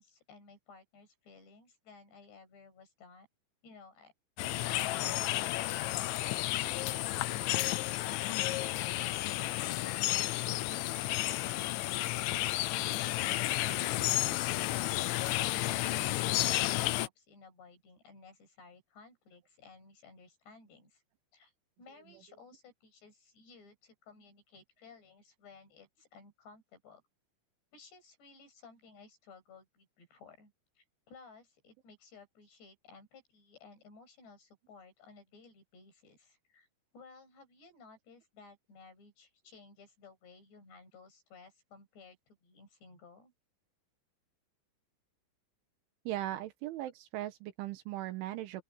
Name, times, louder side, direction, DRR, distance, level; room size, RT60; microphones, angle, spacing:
voice 1, 0.0-3.3 3.6-4.1 6.6-21.0 21.3-21.5 21.8-27.0 27.7-36.7 36.9-43.3, left 4 dB, 60° left, 10.0 m, -57 dB
sound 1, 4.4-17.1, left 17 dB, 85° left, 3.2 m, -32 dB
voice 2, 46.1-48.6, right 14 dB, 85° right, 3.8 m, -38 dB
open air
omnidirectional pair, 5.4 m